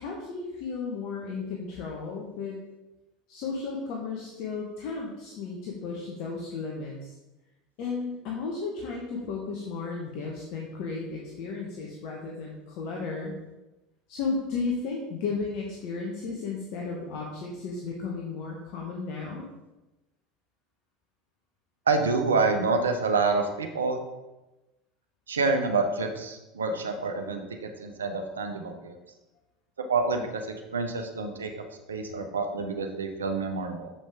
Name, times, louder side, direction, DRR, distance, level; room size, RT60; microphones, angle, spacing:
voice 1, 0.0-2.6 3.3-7.1 7.8-13.3 14.1-19.5, left 4 dB, 55° left, -1 dB, 1.0 m, -34 dB
voice 2, 21.9-24.0 25.3-29.0 29.9-31.6 31.9-33.9, right 4 dB, 80° right, 5 dB, 0.7 m, -27 dB
7.6 x 5.1 x 3.5 m, 1.0 s
figure-of-eight pair, 75°, 0 cm